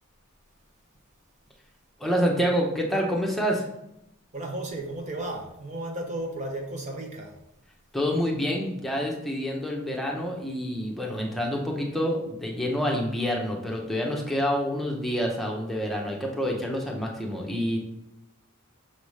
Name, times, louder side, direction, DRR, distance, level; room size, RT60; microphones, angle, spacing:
voice 1, 2.0-3.7 7.9-17.8, equal, ahead, -1 dB, 0.9 m, -27 dB
voice 2, 4.3-7.4, right 1 dB, 35° right, 2 dB, 0.8 m, -34 dB
6.3 x 3.8 x 4.8 m, 0.82 s
head